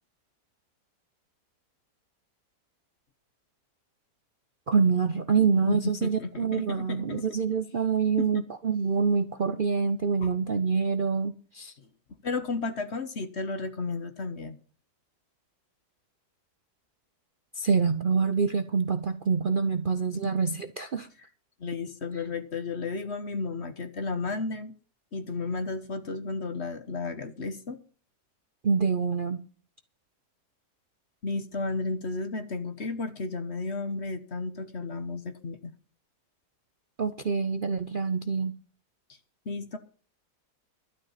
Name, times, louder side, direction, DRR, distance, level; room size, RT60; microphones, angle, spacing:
voice 1, 4.7-11.7 17.6-21.1 28.6-29.4 37.0-38.5, right 5 dB, 45° right, 0.7 m, -26 dB
voice 2, 5.6-7.2 8.2-8.4 10.2-10.3 11.8-11.9 12.2-14.6 20.2-20.3 21.6-24.7 25.1-27.8 31.2-35.7 39.4-39.8, left 3 dB, 45° left, 1.3 m, -33 dB
12.5 x 9.8 x 5.7 m
omnidirectional pair, 1.7 m